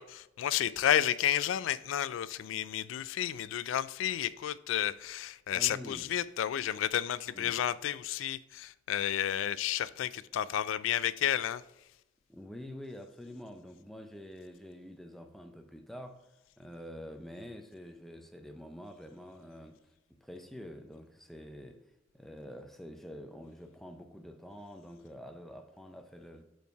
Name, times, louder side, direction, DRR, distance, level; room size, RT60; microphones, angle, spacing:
voice 1, 0.0-11.6, left 10 dB, 85° left, 0.3 m, -31 dB
voice 2, 5.5-6.1 7.3-7.7 12.3-16.3 16.6-21.9 22.1-26.4, equal, ahead, 0.5 m, -47 dB
5.5 x 4.5 x 4.6 m
head